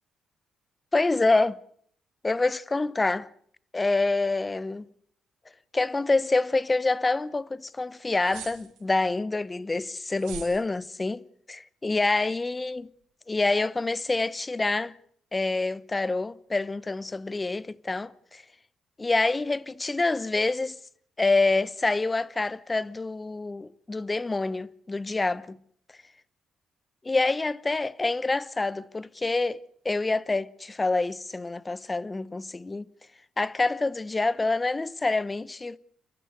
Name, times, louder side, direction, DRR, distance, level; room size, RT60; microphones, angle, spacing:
voice 1, 0.9-1.6 2.2-3.3 3.7-4.9 5.7-11.2 11.5-12.9 13.3-14.9 15.3-18.4 19.0-20.8 21.2-25.6 27.0-32.9 33.4-35.8, left 3 dB, 20° left, 1.0 m, -27 dB
sound 1, 8.2-8.9 10.1-10.6, right 9 dB, 90° right, 5.6 m, -41 dB
29.5 x 13.0 x 9.5 m
cardioid pair, 90°, 0 cm